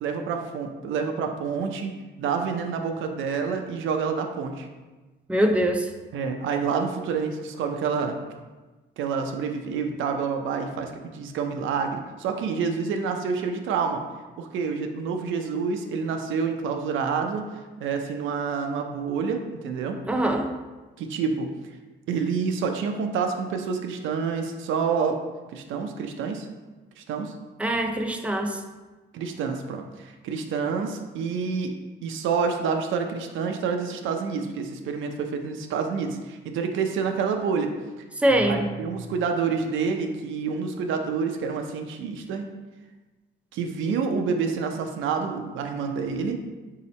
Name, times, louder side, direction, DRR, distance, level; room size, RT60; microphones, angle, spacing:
voice 1, 0.0-1.9 2.2-4.7 6.1-8.2 9.0-14.0 14.4-17.4 17.8-20.0 21.0-21.5 22.1-25.2 25.5-26.5 27.0-27.3 29.1-31.7 32.0-37.7 38.5-42.5 43.5-46.4, right 5 dB, 80° right, 5 dB, 0.5 m, -28 dB
voice 2, 5.3-5.9 20.1-20.5 27.6-28.6 38.2-38.7, right 1 dB, 5° right, 4 dB, 0.5 m, -23 dB
4.0 x 2.8 x 4.2 m, 1.2 s
cardioid pair, 90°, 20 cm